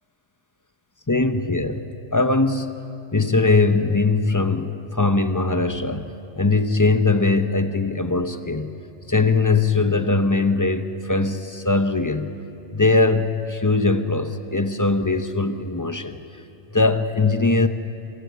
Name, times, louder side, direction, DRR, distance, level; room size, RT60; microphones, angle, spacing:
voice 1, 1.1-1.8 2.1-2.7 3.1-6.1 6.4-8.8 9.1-12.3 12.7-16.2 16.7-17.7, left 3 dB, 20° left, 9 dB, 0.6 m, -20 dB
26.0 x 15.5 x 8.1 m, 2.8 s
omnidirectional pair, 1.3 m